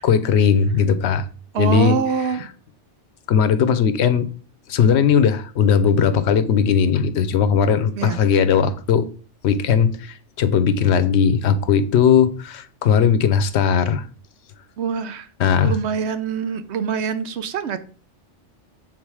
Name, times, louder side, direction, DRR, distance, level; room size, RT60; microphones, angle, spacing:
voice 1, 0.0-1.2 1.6-2.0 3.3-4.3 4.7-9.1 9.4-14.0 15.4-15.7, left 7 dB, 70° left, 0.9 m, -18 dB
voice 2, 1.5-2.5 7.9-8.2 14.8-15.3 15.6-17.8, right 6 dB, 70° right, 0.9 m, -24 dB
7.3 x 3.8 x 4.8 m
omnidirectional pair, 1.2 m